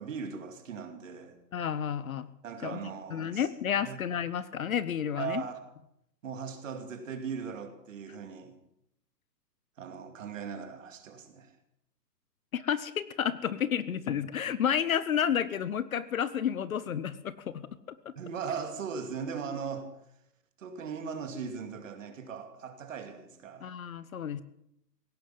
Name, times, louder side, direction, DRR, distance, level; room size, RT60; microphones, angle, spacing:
voice 1, 0.0-1.4 2.4-3.5 3.8-4.0 5.2-5.6 6.2-8.6 9.8-11.5 18.2-19.9 20.6-23.7, right 6 dB, 50° right, 7 dB, 2.6 m, -39 dB
voice 2, 1.5-2.3 2.6-2.8 3.1-5.4 12.5-17.7 23.6-24.4, left 8 dB, 55° left, 17 dB, 0.9 m, -31 dB
17.0 x 10.0 x 7.5 m, 0.79 s
hypercardioid pair, 165°, 50 cm